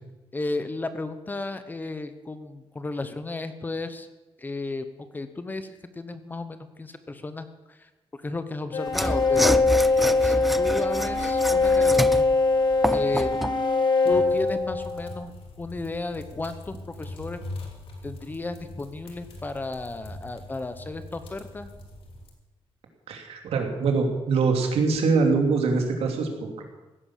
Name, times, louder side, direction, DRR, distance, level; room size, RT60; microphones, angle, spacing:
voice 1, 0.3-4.1 4.4-4.9 5.1-7.9 8.2-9.6 10.2-12.3 12.9-13.3 14.0-17.4 18.0-21.7, left 3 dB, 20° left, 10 dB, 1.0 m, -34 dB
sound 1, 8.7-15.2, left 3 dB, 50° left, 1.8 m, -22 dB
Mechanisms / Sawing, 8.9-13.6, equal, ahead, 0.4 m, -28 dB
sound 2, 14.1-22.3, left 1 dB, 65° left, 3.2 m, -42 dB
voice 2, 23.1-26.6, right 4 dB, 85° right, 3 dB, 3.0 m, -24 dB
16.5 x 10.5 x 7.4 m, 1.1 s
wide cardioid pair, 165°, 10 cm